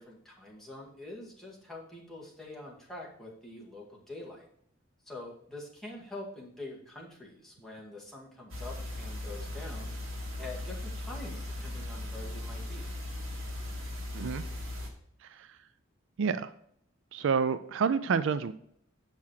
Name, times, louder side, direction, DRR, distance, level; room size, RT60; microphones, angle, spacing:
voice 1, 0.0-4.5 5.1-9.9 10.4-12.9, left 2 dB, ahead, -4 dB, 2.0 m, -45 dB
sound 1, 8.5-14.9, left 1 dB, 85° right, 2.0 m, -38 dB
voice 2, 14.1-14.4 15.2-15.5 16.2-16.5 17.1-18.5, right 6 dB, 65° right, 13 dB, 0.4 m, -29 dB
7.2 x 5.7 x 4.7 m, 0.67 s
head